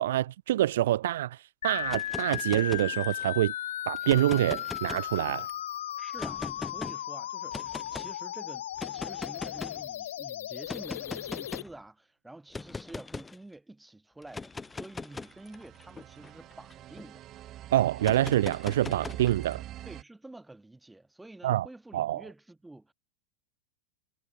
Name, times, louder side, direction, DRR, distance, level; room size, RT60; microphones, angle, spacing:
voice 1, 0.0-3.5 3.9-5.5 17.7-19.6 21.4-21.7 21.9-22.2, right 13 dB, 70° right, 0.6 m, -26 dB
sound 1, 1.6-11.6, left 12 dB, 70° left, 1.3 m, -36 dB
sound 2, 1.8-3.3 4.0-5.5 6.2-6.9 7.5-8.1 8.8-9.9 10.7-11.8 12.5-13.4 14.2-17.1 18.0-19.6, left 4 dB, 15° left, 0.7 m, -40 dB
voice 2, 6.0-7.6 7.9-17.2 19.8-22.9, right 2 dB, 5° right, 4.8 m, -49 dB
sound 3, 14.6-20.0, right 13 dB, 40° right, 4.5 m, -45 dB
hypercardioid pair, 90°, 0 cm